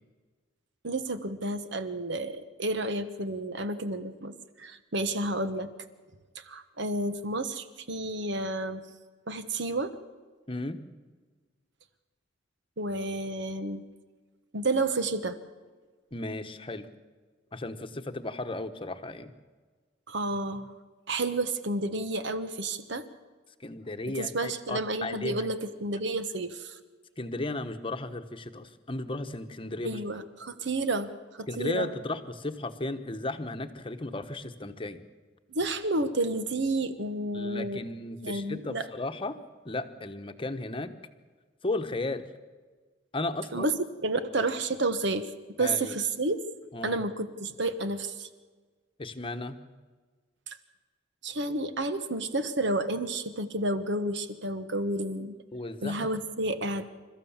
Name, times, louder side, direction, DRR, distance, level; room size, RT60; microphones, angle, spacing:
voice 1, 0.8-5.7 6.4-8.8 9.3-9.9 12.8-13.8 14.5-15.4 20.1-20.7 21.1-23.0 24.2-26.8 29.8-31.9 35.5-37.8 38.2-38.8 43.5-43.7 44.0-45.3 45.6-46.4 46.8-48.3 50.5-50.6 51.2-55.4 55.8-56.9, right 2 dB, 60° right, 10 dB, 1.4 m, -30 dB
voice 2, 10.5-10.8 16.1-16.9 17.5-19.3 23.6-25.5 27.2-29.9 31.5-35.0 37.3-39.4 39.6-40.9 41.6-42.2 43.1-43.7 45.6-46.0 46.7-47.0 49.0-49.6 55.5-56.0, left 2 dB, 25° left, 8 dB, 1.2 m, -35 dB
29.0 x 14.0 x 7.4 m, 1.4 s
head